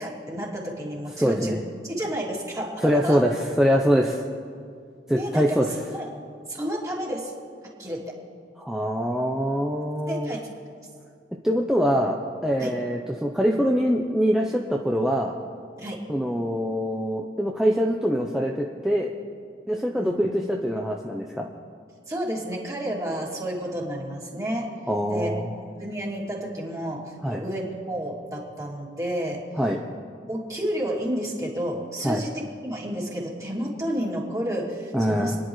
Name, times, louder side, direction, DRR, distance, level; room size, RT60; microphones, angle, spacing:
voice 1, 0.0-3.2 5.1-6.1 6.5-7.3 7.8-8.1 10.1-10.5 12.6-12.8 15.8-16.1 20.0-20.1 22.1-24.7 25.1-25.3 25.8-29.4 30.3-32.3 32.6-35.3, equal, 20° right, -4 dB, 2.7 m, -31 dB
voice 2, 1.2-1.6 2.8-4.2 5.1-5.7 8.6-10.3 11.4-12.2 12.4-15.3 16.1-19.1 19.7-21.5 24.9-25.5 27.2-27.4 29.6-29.8 32.0-32.2 34.9-35.4, equal, 5° right, -1 dB, 0.7 m, -24 dB
29.5 x 10.5 x 3.2 m, 2.2 s
head